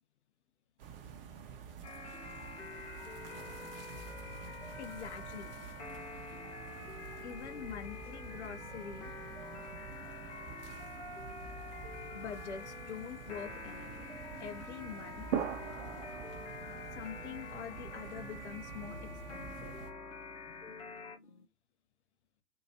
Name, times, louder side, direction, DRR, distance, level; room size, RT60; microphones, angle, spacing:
sound 1, 0.8-19.9, right 8 dB, 40° right, 0.8 m, -46 dB
sound 2, 1.8-21.2, left 3 dB, 15° left, 0.8 m, -47 dB
voice 1, 4.3-5.7 7.2-9.2 12.1-14.1 14.4-15.3 16.9-19.8, left 8 dB, 50° left, 0.8 m, -45 dB
sound 3, 13.2-21.5, left 3 dB, 90° left, 0.7 m, -58 dB
3.0 x 2.7 x 2.7 m
figure-of-eight pair, 115°, 44 cm